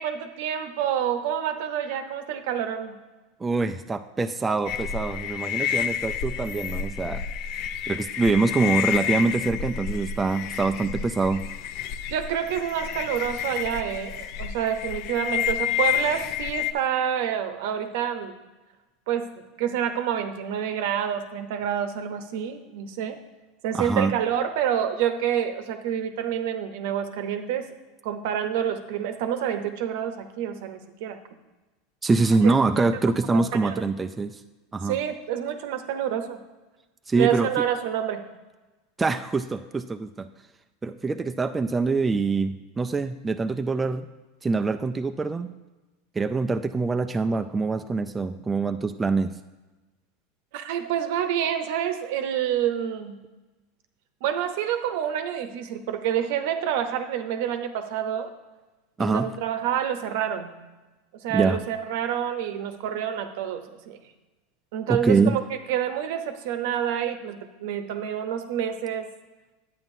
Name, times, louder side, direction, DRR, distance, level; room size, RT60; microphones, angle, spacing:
voice 1, 0.0-3.0 12.1-18.4 19.1-23.2 23.6-27.7 28.0-31.2 32.4-32.5 33.6-33.8 34.8-36.4 37.1-38.2 50.5-53.2 54.2-58.3 59.0-60.5 61.2-64.0 64.7-65.4 65.7-69.1, right 9 dB, 70° right, 8 dB, 0.8 m, -28 dB
voice 2, 3.4-7.2 7.9-11.5 23.7-24.1 32.0-34.4 34.7-35.0 37.1-37.5 39.0-40.3 40.8-44.1 44.4-45.5 46.1-49.4 59.0-59.3 61.3-61.6 64.9-65.4, right 4 dB, 15° right, 6 dB, 0.3 m, -24 dB
sound 1, 4.6-16.7, left 9 dB, 55° left, 0.4 m, -30 dB
10.5 x 8.5 x 2.7 m, 1.2 s
supercardioid pair, 120°, 0 cm